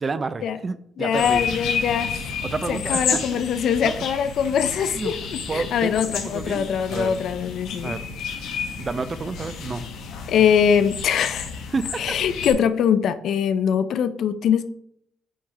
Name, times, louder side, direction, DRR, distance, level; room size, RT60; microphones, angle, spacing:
voice 1, 0.0-1.4 2.4-3.4 3.8-4.0 4.9-5.1 5.5-7.2 7.8-8.0 8.8-9.8 11.7-12.2, right 4 dB, 25° right, 14 dB, 0.4 m, -30 dB
voice 2, 1.0-2.2 2.7-7.9 10.3-11.5 12.0-14.7, left 8 dB, 65° left, 12 dB, 0.4 m, -22 dB
sound 1, 1.1-12.5, left 6 dB, 90° left, 1.2 m, -31 dB
9.6 x 3.5 x 3.2 m, 0.71 s
cardioid pair, 130°, 0 cm